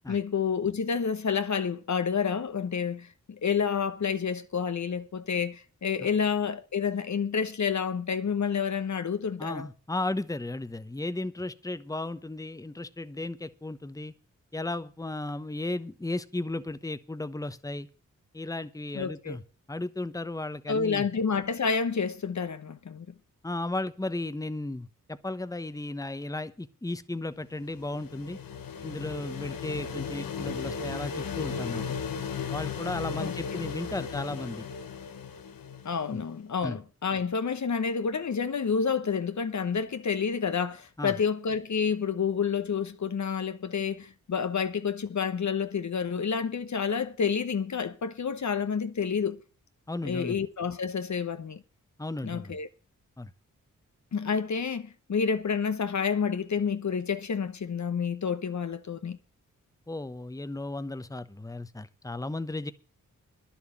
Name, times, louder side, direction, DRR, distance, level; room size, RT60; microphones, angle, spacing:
voice 1, 0.1-9.7 18.9-19.4 20.7-23.1 33.2-33.4 35.8-49.4 50.0-51.6 52.2-52.7 54.1-59.2, left 6 dB, 55° left, 1.1 m, -29 dB
voice 2, 9.4-14.1 14.5-17.9 18.3-19.4 19.7-21.1 23.4-28.4 28.8-32.0 32.5-34.7 36.1-36.2 36.6-36.8 41.0-41.2 49.9-50.4 52.0-52.6 53.2-53.3 59.9-62.7, left 2 dB, 10° left, 1.0 m, -35 dB
sound 1, 27.4-36.2, left 6 dB, 75° left, 1.3 m, -36 dB
11.0 x 7.3 x 9.0 m
cardioid pair, 45°, 34 cm